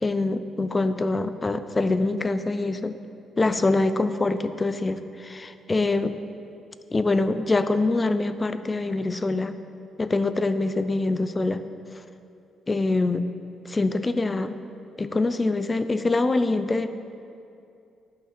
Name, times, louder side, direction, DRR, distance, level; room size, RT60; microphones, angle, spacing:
voice 1, 0.0-3.0 3.4-6.1 6.9-9.6 10.0-11.6 12.7-13.2 13.7-14.6 15.0-16.9, left 2 dB, 25° left, 11 dB, 0.4 m, -24 dB
11.0 x 5.7 x 4.3 m, 2.5 s
cardioid pair, 90°, 0 cm